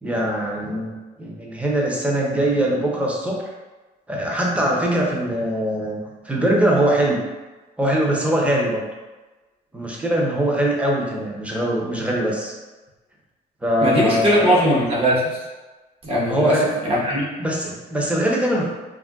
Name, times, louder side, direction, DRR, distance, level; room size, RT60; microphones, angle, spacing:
voice 1, 0.0-3.4 4.1-6.0 6.2-7.2 7.8-8.8 9.7-12.5 13.6-14.6 16.3-16.7 17.4-18.7, right 1 dB, 5° right, -3 dB, 0.6 m, -22 dB
voice 2, 13.8-15.4 16.0-16.6 16.8-17.3, equal, 35° right, -5 dB, 0.9 m, -19 dB
2.4 x 2.2 x 3.5 m, 1.2 s
cardioid pair, 110°, 17 cm